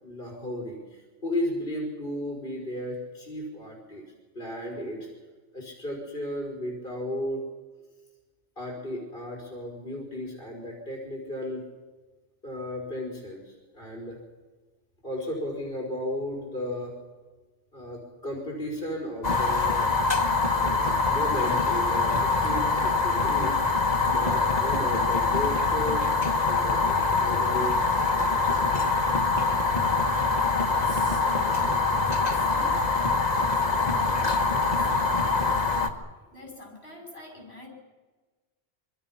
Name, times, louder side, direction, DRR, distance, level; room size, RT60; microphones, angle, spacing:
voice 1, 0.0-4.0 4.3-5.1 5.5-7.4 8.6-11.6 12.4-14.2 15.0-16.9 17.7-19.9 20.5-23.7 24.0-27.8 28.3-29.0, left 1 dB, 55° left, -2 dB, 5.1 m, -34 dB
Fire, 19.2-35.9, left 3 dB, 40° left, 1.6 m, -24 dB
voice 2, 30.0-32.8 33.4-35.3 36.3-37.7, left 1 dB, 75° left, 0 dB, 6.0 m, -46 dB
26.5 x 24.5 x 5.8 m, 1.3 s
omnidirectional pair, 1.1 m